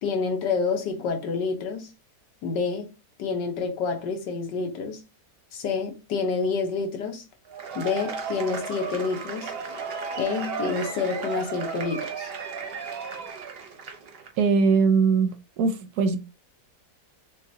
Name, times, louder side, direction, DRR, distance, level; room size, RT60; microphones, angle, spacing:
voice 1, 0.0-1.9 2.4-2.9 3.2-5.0 5.5-7.2 7.7-9.5 10.2-12.3, left 5 dB, 85° left, 1.6 m, -28 dB
Cheering / Applause / Crowd, 7.5-14.3, right 5 dB, 50° right, 0.7 m, -34 dB
voice 2, 14.4-16.2, right 5 dB, 70° right, 1.1 m, -21 dB
6.3 x 2.3 x 2.7 m
omnidirectional pair, 1.8 m